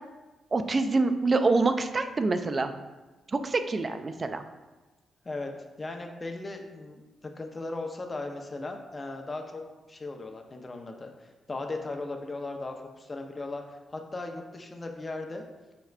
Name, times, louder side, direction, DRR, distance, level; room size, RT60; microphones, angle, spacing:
voice 1, 0.5-2.7 3.3-4.4, right 3 dB, 40° right, 9 dB, 0.3 m, -26 dB
voice 2, 5.8-9.6 9.9-15.4, left 2 dB, 35° left, 3 dB, 0.6 m, -37 dB
5.0 x 2.3 x 3.2 m, 1.2 s
supercardioid pair, 50°, 0 cm